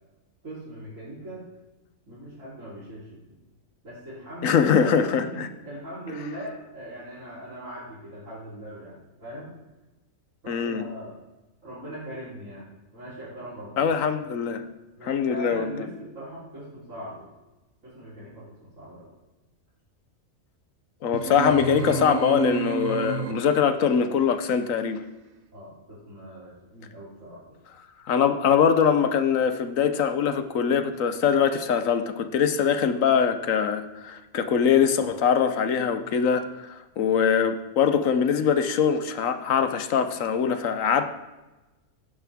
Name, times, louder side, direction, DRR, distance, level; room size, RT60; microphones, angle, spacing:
voice 1, 0.4-1.5 2.1-3.4 3.8-9.6 10.4-11.1 11.6-14.0 15.0-17.3 17.8-19.1 25.5-27.4, right 1 dB, 65° right, -12 dB, 4.3 m, -40 dB
voice 2, 4.4-5.5 10.5-10.8 13.8-14.6 15.0-15.7 21.0-25.0 28.1-41.1, left 7 dB, 75° left, 10 dB, 1.2 m, -23 dB
sound 1, 21.1-23.8, right 4 dB, 45° right, 0.9 m, -30 dB
16.5 x 10.0 x 3.6 m, 1.1 s
omnidirectional pair, 1.4 m